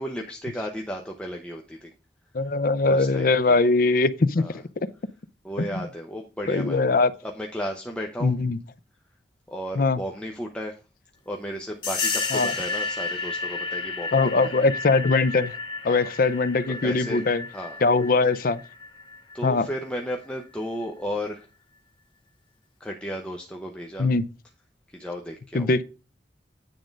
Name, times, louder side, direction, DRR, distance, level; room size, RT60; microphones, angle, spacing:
voice 1, 0.0-1.9 2.8-3.6 4.4-4.6 5.4-6.8 7.2-8.3 9.5-10.8 11.3-14.7 15.8-16.1 16.7-17.8 19.3-21.5 22.8-24.1 24.9-25.7, equal, 5° left, 0.7 m, -34 dB
voice 2, 2.3-4.9 6.5-7.1 8.2-8.6 9.8-10.0 12.3-12.5 14.1-15.5 15.8-17.4 17.8-18.6 19.4-19.7 24.0-24.2 25.5-25.8, left 3 dB, 50° left, 0.5 m, -21 dB
sound 1, 11.8-20.1, left 4 dB, 30° left, 2.1 m, -32 dB
9.2 x 3.8 x 5.2 m
head